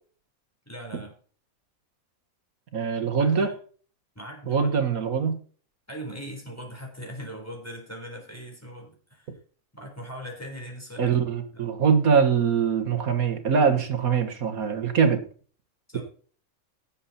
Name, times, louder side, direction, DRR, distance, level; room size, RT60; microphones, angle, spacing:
voice 1, 0.7-1.1 3.0-3.5 4.2-4.7 5.9-9.3 9.7-11.2 11.5-11.7 15.9-16.0, equal, 10° left, 1 dB, 3.9 m, -40 dB
voice 2, 2.7-3.5 4.5-5.4 11.0-15.2, right 6 dB, 80° right, 7 dB, 1.9 m, -23 dB
17.5 x 7.3 x 4.2 m, 0.43 s
omnidirectional pair, 1.5 m